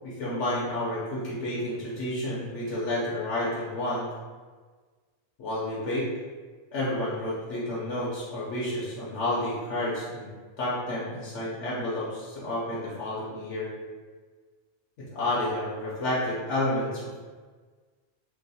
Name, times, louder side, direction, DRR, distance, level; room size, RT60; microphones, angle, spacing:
voice 1, 0.0-4.1 5.4-6.1 6.7-10.3 10.6-13.7 15.1-17.2, left 1 dB, 75° left, -8 dB, 1.1 m, -30 dB
3.0 x 2.0 x 4.0 m, 1.4 s
omnidirectional pair, 1.2 m